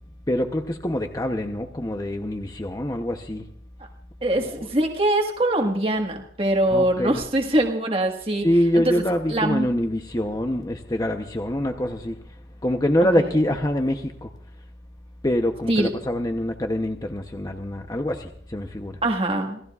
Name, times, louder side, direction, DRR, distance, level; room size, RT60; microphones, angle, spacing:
voice 1, 0.3-3.4 4.4-4.7 6.7-7.2 8.4-12.3 12.6-14.3 15.2-19.0, equal, 20° left, 4 dB, 0.8 m, -25 dB
voice 2, 4.2-8.5 8.7-8.8 9.3-9.7 13.2-13.3 15.7-15.9 19.0-19.6, right 1 dB, 30° right, 2 dB, 1.6 m, -23 dB
28.0 x 17.0 x 2.4 m, 0.68 s
head